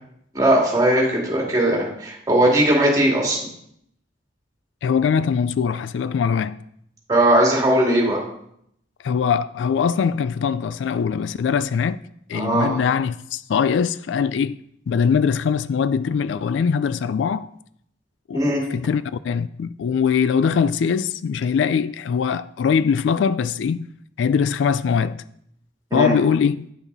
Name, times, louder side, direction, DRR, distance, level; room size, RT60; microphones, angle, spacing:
voice 1, 0.3-3.4 7.1-8.2 12.3-12.7 18.3-18.6 25.9-26.1, right 1 dB, 20° right, 2.4 m, -18 dB
voice 2, 4.8-6.6 9.0-12.0 12.3-14.6 14.9-17.5 18.3-23.9 24.2-25.2 25.9-26.7, left 6 dB, 75° left, 0.3 m, -22 dB
9.9 x 5.9 x 4.0 m
head